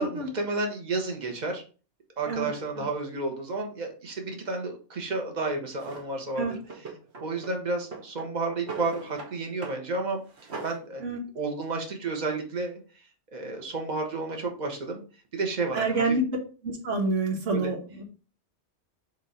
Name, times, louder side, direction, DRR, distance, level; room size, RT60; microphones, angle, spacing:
voice 1, 0.0-1.6 2.2-6.6 7.2-10.2 10.6-12.8 13.3-15.0 15.3-16.2 17.5-17.7, right 3 dB, 35° right, 2 dB, 1.4 m, -31 dB
Drawer open or close, 5.8-6.1 6.7-7.5 7.8-9.3 9.6-9.8 10.1-10.8, right 4 dB, 60° right, 1.7 m, -40 dB
voice 2, 15.7-16.2 16.6-18.0, right 3 dB, 85° right, 2 dB, 1.6 m, -27 dB
7.4 x 2.8 x 5.0 m, 0.36 s
omnidirectional pair, 1.2 m